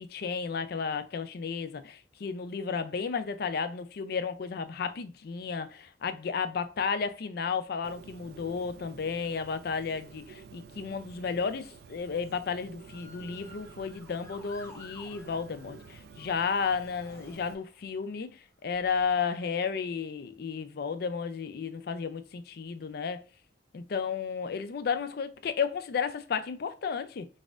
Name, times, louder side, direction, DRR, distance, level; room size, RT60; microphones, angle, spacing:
voice 1, 0.0-23.2 23.7-27.3, left 5 dB, 55° left, 0.4 m, -33 dB
Bird, 7.8-17.5, right 5 dB, 60° right, 0.3 m, -51 dB
Motor vehicle (road) / Siren, 12.8-18.0 18.7-19.1, left 2 dB, 15° left, 0.7 m, -54 dB
4.0 x 2.4 x 3.6 m
head